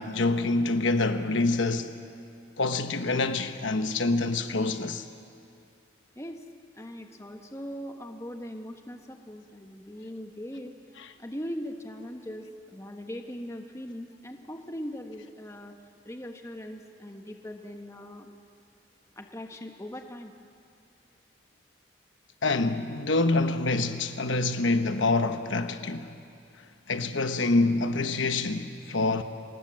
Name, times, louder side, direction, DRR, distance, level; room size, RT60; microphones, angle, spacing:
voice 1, 0.0-1.9 2.6-5.0 22.4-26.1 26.9-29.2, left 3 dB, 80° left, 1.0 m, -26 dB
voice 2, 6.7-10.7 11.2-15.7 16.0-18.3 19.2-20.3, equal, 15° left, 1.3 m, -40 dB
26.0 x 19.5 x 7.5 m
head